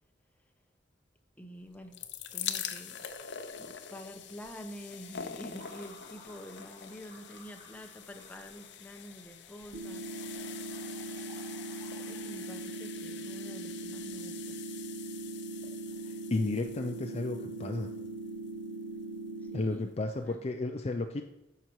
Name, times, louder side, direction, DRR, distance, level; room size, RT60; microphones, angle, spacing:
voice 1, 1.4-2.0 2.3-3.1 3.6-11.1 12.0-14.6 19.4-19.9 20.2-20.4, equal, 10° left, 4 dB, 0.9 m, -48 dB
sound 1, 1.7-18.7 19.5-19.6 19.8-19.9, left 9 dB, 65° left, 0.8 m, -45 dB
sound 2, 5.5-12.7, equal, 25° right, 3.8 m, -57 dB
sound 3, 9.7-19.7, right 2 dB, 85° right, 1.2 m, -40 dB
voice 2, 16.0-17.9 19.5-21.2, left 2 dB, 35° left, 5 dB, 0.5 m, -33 dB
12.5 x 5.8 x 4.7 m, 0.91 s
head